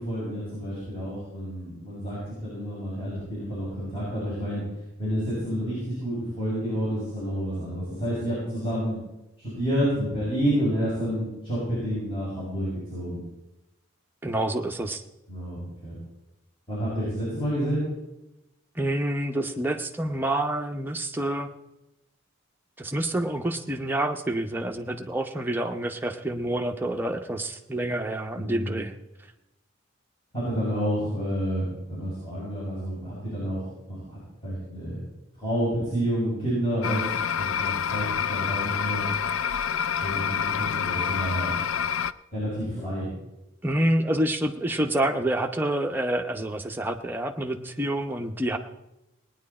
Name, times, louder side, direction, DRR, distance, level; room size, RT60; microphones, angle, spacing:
voice 1, 0.0-4.6 5.0-9.0 9.4-13.2 15.3-16.0 16.7-17.9 28.4-28.8 30.3-35.0 35.4-37.0 37.4-39.1 40.0-41.5 42.3-43.1, equal, 25° left, -10 dB, 6.3 m, -29 dB
voice 2, 14.2-15.0 18.8-21.5 22.8-28.9 43.6-48.6, right 1 dB, 10° right, 3 dB, 0.8 m, -27 dB
sound 1, 36.8-42.1, left 7 dB, 85° left, 0.4 m, -27 dB
18.5 x 9.9 x 4.3 m, 0.94 s
head